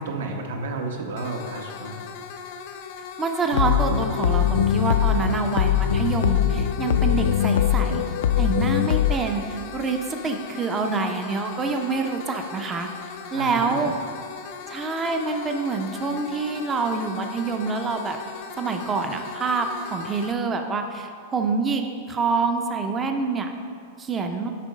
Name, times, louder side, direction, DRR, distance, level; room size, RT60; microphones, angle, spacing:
voice 1, 0.0-2.0 13.3-13.9, right 3 dB, 85° right, 2 dB, 1.1 m, -32 dB
sound 1, 1.2-20.3, left 6 dB, 45° left, 0.6 m, -39 dB
voice 2, 3.2-8.0 8.4-12.9 13.3-13.9 14.7-18.2 18.6-23.5 24.0-24.5, right 4 dB, 15° right, 5 dB, 0.4 m, -26 dB
sound 2, 3.5-9.1, left 10 dB, 90° left, 0.3 m, -21 dB
7.4 x 5.3 x 5.0 m, 2.3 s
supercardioid pair, 170°, 0 cm